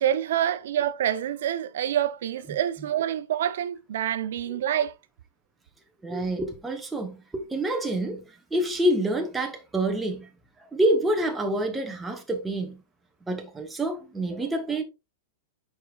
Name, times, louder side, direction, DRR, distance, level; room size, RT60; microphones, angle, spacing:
voice 1, 0.0-4.9, right 10 dB, 70° right, 0.6 m, -27 dB
voice 2, 2.5-2.9 6.0-10.3 10.6-12.8 13.3-14.8, right 1 dB, 5° right, 0.8 m, -27 dB
8.2 x 5.0 x 2.3 m
supercardioid pair, 160°, 0 cm